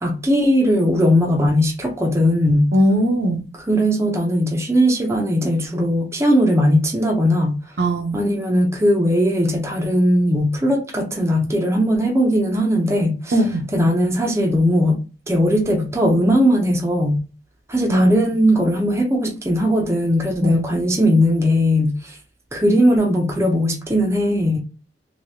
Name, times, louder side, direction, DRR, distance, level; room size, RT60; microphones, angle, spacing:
voice 1, 0.0-2.7 3.7-7.6 8.1-13.3 13.7-15.0 15.3-17.2 17.7-22.2 22.5-24.6, equal, 15° right, 0.5 m, -18 dB
voice 2, 2.7-3.4 7.8-8.2 13.3-13.7 17.9-18.1 20.4-20.6, right 1 dB, 60° right, 0.6 m, -19 dB
3.2 x 2.7 x 2.6 m
head